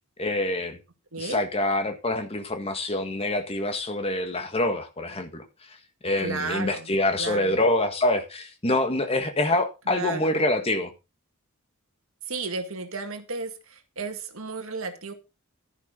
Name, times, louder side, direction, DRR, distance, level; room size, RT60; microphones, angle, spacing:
voice 1, 0.2-0.8 1.2-5.4 6.0-10.9, left 1 dB, 25° left, 1.7 m, -26 dB
voice 2, 6.2-6.9 7.2-7.6 9.9-10.4 12.3-15.1, right 3 dB, 70° right, 1.9 m, -33 dB
12.0 x 11.0 x 3.8 m
head